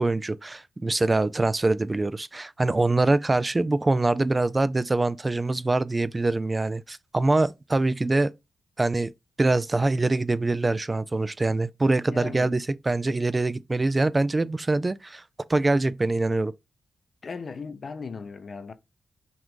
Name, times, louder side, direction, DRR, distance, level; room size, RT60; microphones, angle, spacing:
voice 1, 0.0-8.3 8.8-9.1 9.4-15.2 15.5-16.5, right 2 dB, 25° right, 0.3 m, -24 dB
voice 2, 12.1-12.5 17.2-18.7, left 4 dB, 50° left, 0.6 m, -37 dB
5.9 x 2.5 x 3.6 m
cardioid pair, 85°, 0 cm